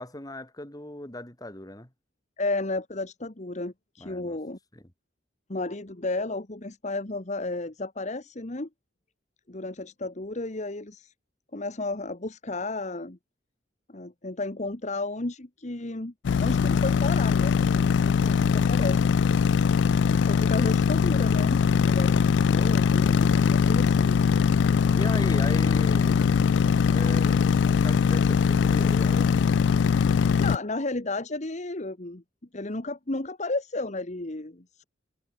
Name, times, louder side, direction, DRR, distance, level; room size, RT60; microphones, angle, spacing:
voice 1, 0.0-1.9 4.0-4.4 4.7-4.8 24.9-26.2 26.9-29.4, left 1 dB, 20° left, 2.9 m, -38 dB
voice 2, 2.4-4.6 5.5-8.7 9.5-11.1 11.5-13.2 13.9-16.1 16.4-19.1 20.1-24.2 30.2-32.2 32.5-34.8, left 2 dB, 40° left, 1.5 m, -33 dB
sound 1, 16.2-30.6, left 6 dB, 75° left, 0.3 m, -21 dB
head